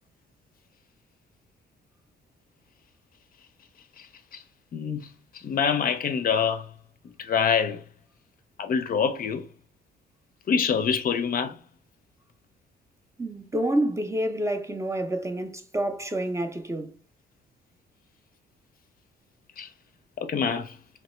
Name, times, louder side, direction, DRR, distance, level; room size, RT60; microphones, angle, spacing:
voice 1, 4.7-5.1 5.3-6.7 7.2-7.8 8.6-9.4 10.5-11.6 19.6-19.7 20.2-20.8, left 6 dB, 45° left, 0.4 m, -25 dB
voice 2, 13.2-17.0, right 1 dB, 15° right, 0.4 m, -28 dB
3.0 x 2.1 x 3.0 m
cardioid pair, 90°, 20 cm